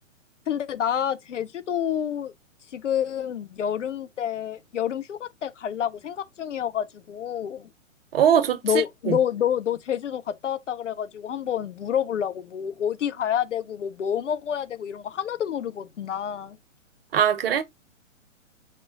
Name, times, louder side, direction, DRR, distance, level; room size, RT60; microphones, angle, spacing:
voice 1, 0.5-2.3 2.7-7.7 8.6-16.6, left 9 dB, 70° left, 0.6 m, -28 dB
voice 2, 8.1-8.6 9.1-9.2 17.1-17.6, right 9 dB, 50° right, 0.7 m, -20 dB
4.3 x 2.2 x 3.7 m
figure-of-eight pair, 120°, 39 cm